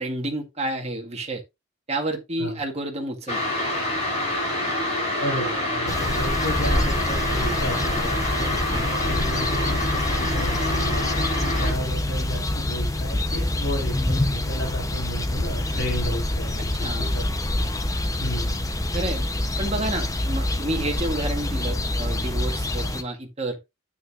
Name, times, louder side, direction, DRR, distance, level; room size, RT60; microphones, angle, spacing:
voice 1, 0.0-1.4 1.9-3.4 8.7-8.9 16.8-17.1 18.9-19.3 19.6-23.6, right 1 dB, 30° right, 1.8 m, -30 dB
sound 1, 3.3-11.7, left 1 dB, 35° left, 5.0 m, -27 dB
voice 2, 5.2-17.3 17.6-17.7 18.2-18.7, equal, 75° left, 3.9 m, -33 dB
sound 2, 5.9-23.0, left 1 dB, 15° left, 0.8 m, -26 dB
9.5 x 8.1 x 2.5 m
head